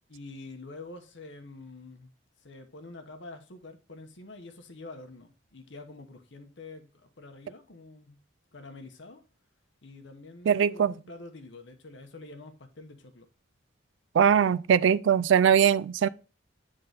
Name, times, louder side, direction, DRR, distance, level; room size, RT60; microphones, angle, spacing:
voice 1, 0.1-2.1 2.4-8.2 8.5-9.2 9.8-13.3, left 2 dB, 65° left, 1.0 m, -46 dB
voice 2, 10.5-10.9 14.1-16.1, right 8 dB, 70° right, 0.3 m, -21 dB
7.9 x 3.8 x 4.0 m
head